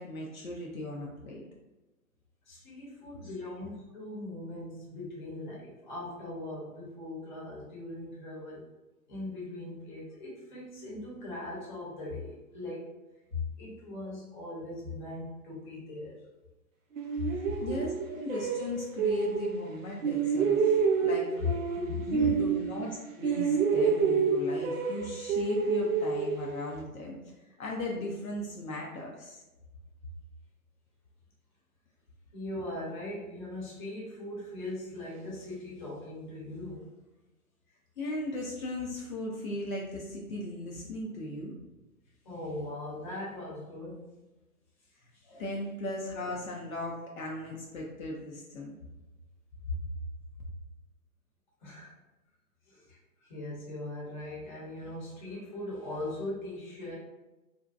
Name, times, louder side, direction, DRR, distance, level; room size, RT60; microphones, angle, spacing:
voice 1, 0.0-1.4 17.6-21.3 21.8-27.2 27.6-29.4 38.0-41.5 45.4-48.7 49.7-49.8, left 1 dB, 65° left, -2 dB, 0.6 m, -37 dB
voice 2, 2.5-8.6 9.1-12.9 13.3-16.2 17.2-17.3 21.4-21.5 21.9-22.3 32.3-36.9 42.2-44.2 45.1-45.4 51.6-51.9 52.7-56.9, left 2 dB, 30° left, -5 dB, 0.8 m, -39 dB
sound 1, 17.0-19.7 20.0-23.0 23.2-26.8, right 5 dB, 60° right, 0.5 m, -28 dB
2.6 x 2.1 x 2.3 m, 1.1 s
figure-of-eight pair, 135°, 45 cm